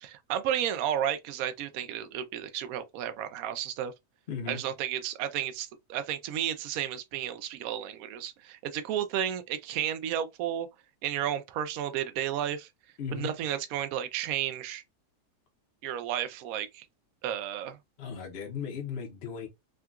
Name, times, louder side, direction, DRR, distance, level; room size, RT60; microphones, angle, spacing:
voice 1, 0.0-3.9 4.5-10.7 11.0-12.7 13.1-14.8 15.8-16.9 17.2-17.8, right 10 dB, 70° right, 0.9 m, -32 dB
voice 2, 4.3-4.6 13.0-13.3 18.0-19.5, left 6 dB, 50° left, 0.8 m, -36 dB
3.7 x 2.3 x 2.3 m
omnidirectional pair, 1.7 m